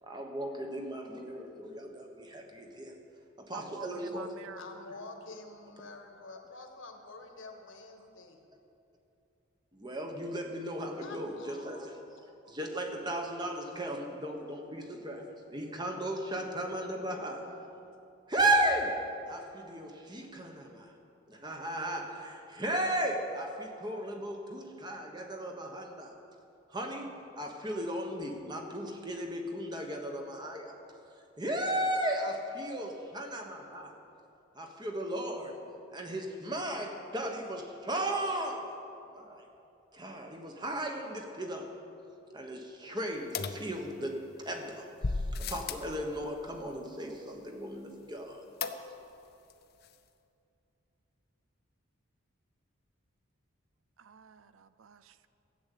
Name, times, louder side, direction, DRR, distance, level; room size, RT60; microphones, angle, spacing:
voice 1, 0.0-3.0 3.4-4.3 9.7-12.0 12.4-17.5 18.3-20.9 21.3-26.2 26.7-30.8 31.4-33.9 34.5-35.6 35.9-38.7 39.1-39.5 39.9-41.8 42.3-48.4, right 1 dB, 20° right, 3 dB, 1.2 m, -35 dB
voice 2, 3.5-4.8 54.0-55.3, right 6 dB, 70° right, 14 dB, 0.5 m, -49 dB
voice 3, 4.6-8.4 11.0-11.9 16.6-16.8 17.2-17.8, left 3 dB, 65° left, 4 dB, 1.4 m, -48 dB
sound 1, 43.3-44.3 45.0-45.9 48.6-49.2 49.5-49.6 49.8-49.9, left 4 dB, 50° left, 0.6 m, -35 dB
13.5 x 8.0 x 8.3 m, 2.7 s
head